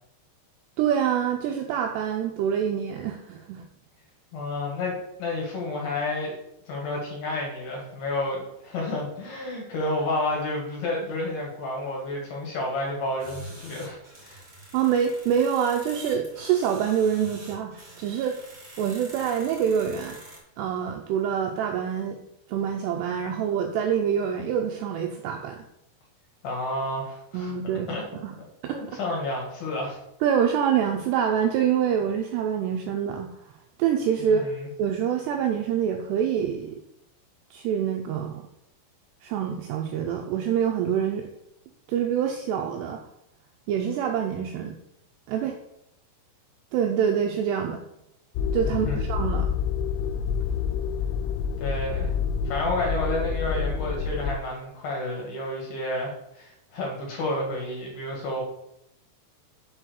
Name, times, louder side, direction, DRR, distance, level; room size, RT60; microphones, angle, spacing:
voice 1, 0.8-3.6 14.7-18.4 18.8-20.2 20.6-22.2 22.5-25.6 27.3-27.9 28.2-28.3 28.6-29.0 30.2-33.4 33.8-34.5 34.8-36.8 37.5-38.5 39.2-41.3 41.9-43.0 43.7-44.8 45.3-45.5 46.7-47.8 48.5-49.5, right 8 dB, 85° right, 3 dB, 2.4 m, -26 dB
voice 2, 4.3-6.4 6.7-14.4 26.4-27.5 27.9-28.0 28.7-30.0 34.2-34.7 48.9-49.0 51.6-52.1 52.5-58.4, left 2 dB, 55° left, -2 dB, 3.4 m, -30 dB
sound 1, 13.2-20.4, right 1 dB, 25° right, 1.4 m, -46 dB
sound 2, 48.4-54.4, left 6 dB, 90° left, 3.1 m, -27 dB
7.7 x 4.4 x 6.4 m, 0.80 s
omnidirectional pair, 5.6 m